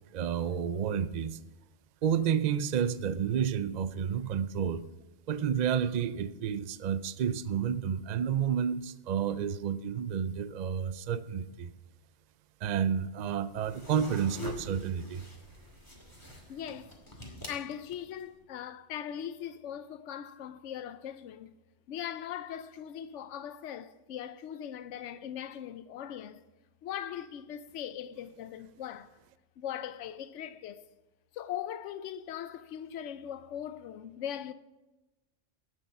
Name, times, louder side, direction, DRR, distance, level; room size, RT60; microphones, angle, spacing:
voice 1, 0.1-1.4 2.0-4.8 5.3-11.7 12.6-15.2, right 8 dB, 55° right, 0.4 m, -30 dB
sound 1, 13.5-18.3, left 1 dB, 15° left, 2.3 m, -45 dB
voice 2, 16.5-17.0 17.5-21.5 21.9-26.4 26.8-29.2 29.6-30.9 31.3-34.5, left 10 dB, 75° left, 1.0 m, -40 dB
18.0 x 6.5 x 5.5 m
omnidirectional pair, 1.3 m